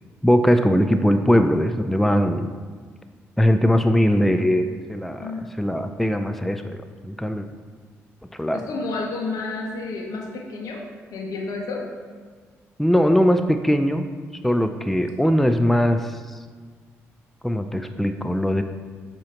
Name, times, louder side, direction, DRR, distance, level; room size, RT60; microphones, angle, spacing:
voice 1, 0.2-2.6 3.4-6.8 7.0-7.5 8.4-8.6 12.8-14.1 14.4-16.2 17.4-18.6, equal, 5° left, 7 dB, 0.4 m, -20 dB
voice 2, 8.5-10.8 11.1-11.8, left 3 dB, 70° left, 0 dB, 1.1 m, -30 dB
7.4 x 3.0 x 4.3 m, 1.5 s
hypercardioid pair, 50°, 6 cm